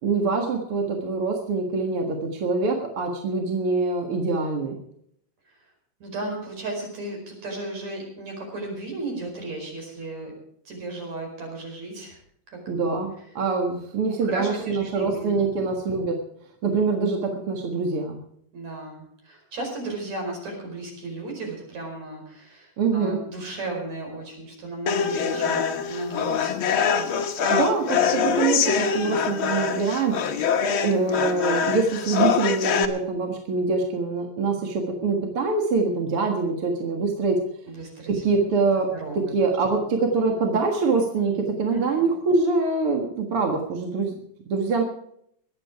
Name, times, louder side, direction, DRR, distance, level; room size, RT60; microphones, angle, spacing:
voice 1, 0.0-4.8 12.7-16.2 16.6-18.2 22.8-23.2 27.5-30.2 30.8-37.4 38.1-38.9 39.3-44.1 44.5-44.8, right 4 dB, 55° right, 2 dB, 2.4 m, -24 dB
voice 2, 6.0-10.3 10.7-12.2 12.5-12.9 14.2-15.4 18.5-27.1 37.7-38.1 38.9-39.3 39.7-40.0 41.7-42.1, right 2 dB, 70° right, 1 dB, 6.2 m, -35 dB
sound 1, 24.9-32.8, left 7 dB, 60° left, 1.5 m, -24 dB
22.5 x 9.0 x 4.8 m, 0.69 s
omnidirectional pair, 3.3 m